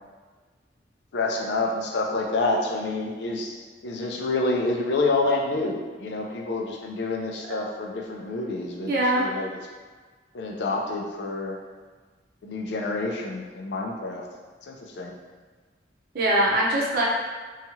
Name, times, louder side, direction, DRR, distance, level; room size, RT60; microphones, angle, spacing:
voice 1, 1.1-3.6 3.8-9.6 10.3-11.6 12.4-14.2 14.6-15.1, left 2 dB, 70° left, 0 dB, 0.4 m, -28 dB
voice 2, 8.9-9.3 16.1-17.1, right 1 dB, 55° right, -4 dB, 0.6 m, -22 dB
2.8 x 2.3 x 2.7 m, 1.4 s
head